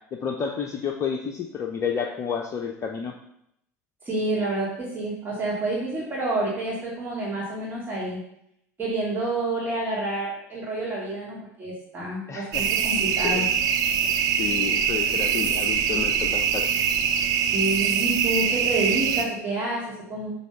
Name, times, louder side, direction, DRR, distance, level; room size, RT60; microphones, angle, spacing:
voice 1, 0.1-3.1 12.3-12.7 13.2-13.4 13.9-14.0 14.3-16.7, left 7 dB, 35° left, 3 dB, 0.7 m, -30 dB
voice 2, 4.0-8.2 8.8-13.5 17.5-20.3, right 2 dB, 20° right, -6 dB, 2.4 m, -28 dB
sound 1, 12.5-19.2, right 7 dB, 40° right, 0.8 m, -23 dB
7.2 x 3.5 x 5.6 m, 0.76 s
figure-of-eight pair, 70°, 9 cm